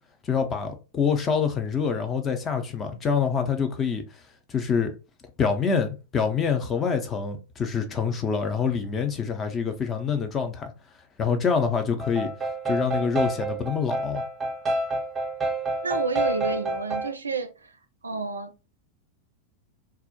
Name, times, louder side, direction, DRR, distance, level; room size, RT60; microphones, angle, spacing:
voice 1, 0.2-4.0 4.5-4.9 5.4-10.7 11.2-12.3 12.6-14.2, left 6 dB, 25° left, 0.5 m, -26 dB
sound 1, 12.0-17.1, right 2 dB, 15° right, 0.7 m, -28 dB
voice 2, 15.8-17.8 18.0-18.7, right 4 dB, 75° right, 0.3 m, -30 dB
2.3 x 2.0 x 2.7 m
figure-of-eight pair, 90°, 0 cm